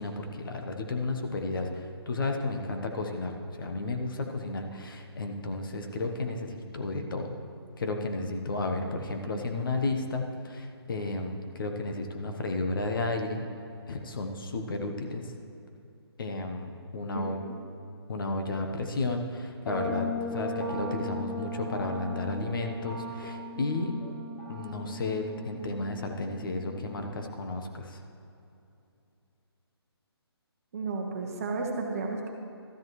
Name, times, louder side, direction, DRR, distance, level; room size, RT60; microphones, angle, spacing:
voice 1, 0.0-7.3 7.8-13.5 13.9-15.3 16.2-17.4 18.1-24.0 24.5-28.0, left 2 dB, 55° left, 4 dB, 1.0 m, -33 dB
voice 2, 9.2-9.6 17.1-17.6 30.7-32.3, right 3 dB, 35° right, 2 dB, 1.0 m, -34 dB
sound 1, 19.7-27.3, left 1 dB, 5° left, 0.9 m, -38 dB
13.0 x 10.5 x 3.1 m, 2.7 s
hypercardioid pair, 160°, 14 cm